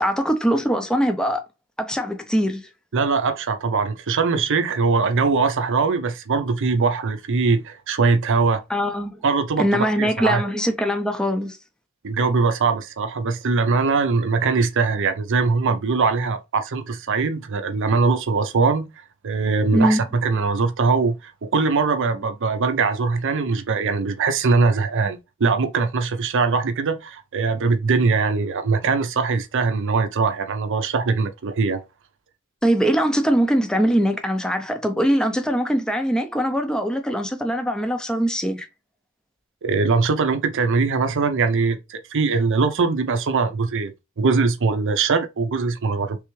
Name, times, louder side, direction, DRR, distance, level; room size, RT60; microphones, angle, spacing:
voice 1, 0.0-1.4 1.8-2.7 8.7-9.2 9.6-11.6 19.7-20.0 32.6-38.7, equal, 5° left, 0.5 m, -22 dB
voice 2, 2.9-8.6 9.2-10.4 12.0-18.9 19.2-31.8 39.6-46.2, right 4 dB, 60° right, 0.6 m, -21 dB
3.4 x 3.4 x 3.1 m
head